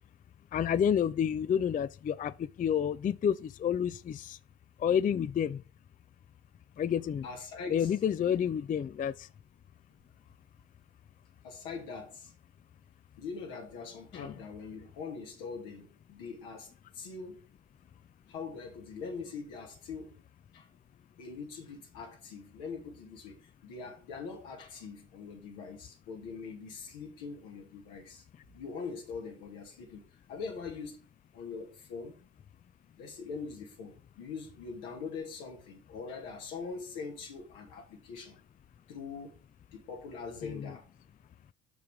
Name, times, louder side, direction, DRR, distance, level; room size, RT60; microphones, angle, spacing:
voice 1, 0.5-2.3 2.6-4.4 4.8-5.6 6.8-7.3 7.7-9.1 14.1-14.3 40.4-40.7, left 8 dB, 25° left, 0.4 m, -29 dB
voice 2, 7.2-7.9 11.4-12.3 13.2-17.4 18.3-20.2 20.5-20.7 21.2-28.2 28.5-30.0 30.3-31.0 31.3-32.1 33.0-38.4 38.9-39.4 39.7-40.8, left 5 dB, 80° left, 2.3 m, -43 dB
6.1 x 5.9 x 4.9 m
hypercardioid pair, 60°, 31 cm